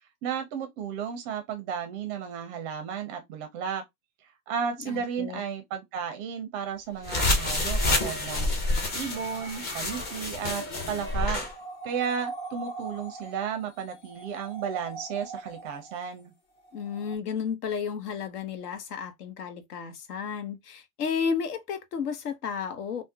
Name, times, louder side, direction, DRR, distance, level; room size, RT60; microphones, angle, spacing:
voice 1, 0.2-3.8 4.5-11.5 11.8-16.3, right 7 dB, 30° right, 0.4 m, -33 dB
voice 2, 4.8-5.4 16.7-23.0, left 6 dB, 75° left, 0.9 m, -32 dB
sound 1, 7.0-11.5, left 2 dB, 20° left, 0.6 m, -28 dB
sound 2, 11.1-16.2 16.6-17.1, right 3 dB, 55° left, 1.4 m, -41 dB
3.5 x 2.1 x 2.6 m
hypercardioid pair, 135°, 47 cm